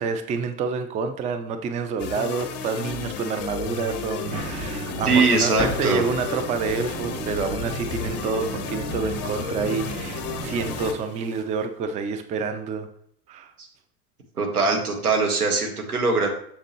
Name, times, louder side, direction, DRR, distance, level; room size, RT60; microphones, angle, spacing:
voice 1, 0.0-12.9 13.3-13.5, right 5 dB, 15° right, 8 dB, 0.5 m, -28 dB
sound 1, 2.0-11.7, left 8 dB, 35° left, 0.8 m, -34 dB
sound 2, 4.2-10.9, right 3 dB, 40° right, 3.2 m, -34 dB
voice 2, 5.0-6.1 13.6-13.7 14.4-16.3, right 3 dB, 80° right, 2 dB, 1.6 m, -21 dB
Slam, 5.4-6.7 9.4-9.5 9.7-9.9 11.4-11.6, left 3 dB, 5° left, 1.9 m, -37 dB
7.4 x 6.9 x 3.1 m, 0.67 s
figure-of-eight pair, 85°, 44 cm